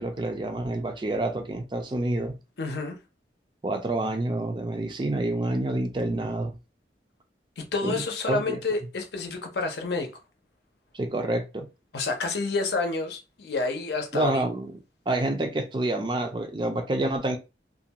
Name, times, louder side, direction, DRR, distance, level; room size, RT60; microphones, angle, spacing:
voice 1, 0.0-2.3 3.6-6.5 7.8-7.9 8.3-8.6 10.9-11.7 14.1-14.7 15.1-17.4, right 2 dB, 25° right, 0.4 m, -28 dB
voice 2, 2.6-3.0 7.6-10.1 11.9-14.4, left 3 dB, 70° left, 0.6 m, -29 dB
2.4 x 2.2 x 2.8 m
head